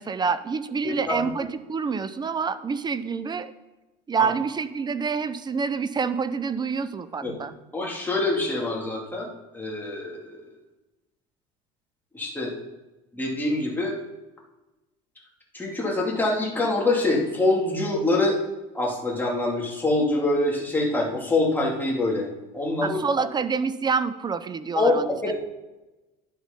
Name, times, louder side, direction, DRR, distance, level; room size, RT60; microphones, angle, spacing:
voice 1, 0.0-3.5 4.1-7.5 22.8-25.3, right 5 dB, 25° right, 13 dB, 0.6 m, -27 dB
voice 2, 0.8-1.3 4.2-4.3 7.2-7.3 7.7-9.3 9.5-10.4 12.1-12.5 13.1-14.0 15.5-18.4 18.7-22.3 22.5-23.0 24.7-25.0 25.2-25.3, left 2 dB, 10° left, -3 dB, 2.8 m, -25 dB
10.5 x 6.5 x 5.3 m, 1.1 s
supercardioid pair, 110°, 19 cm